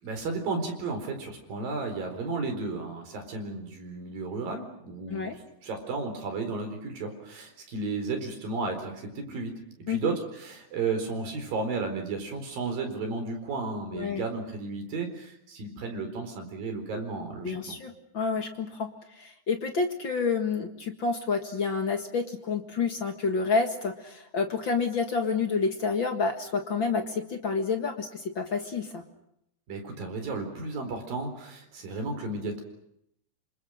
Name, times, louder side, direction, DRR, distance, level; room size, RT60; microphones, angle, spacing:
voice 1, 0.0-9.5 9.9-17.8 29.7-32.6, right 3 dB, 55° right, 5 dB, 5.9 m, -33 dB
voice 2, 13.9-14.2 17.4-29.0, left 4 dB, 50° left, 5 dB, 1.4 m, -29 dB
28.0 x 26.5 x 6.5 m, 0.77 s
omnidirectional pair, 4.8 m